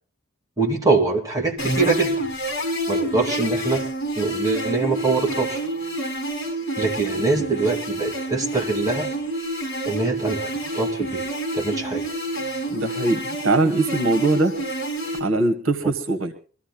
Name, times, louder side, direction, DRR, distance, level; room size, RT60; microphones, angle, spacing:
voice 1, 0.6-2.1 2.9-3.8 4.2-5.6 6.8-9.1 9.9-10.5 10.7-11.2 11.5-12.0, right 3 dB, 15° right, 0 dB, 2.8 m, -23 dB
sound 1, 1.6-15.2, right 1 dB, 60° left, 6.1 m, -28 dB
voice 2, 12.7-14.6 15.2-16.3, right 2 dB, 70° right, 7 dB, 1.6 m, -21 dB
24.5 x 14.0 x 2.3 m, 0.41 s
head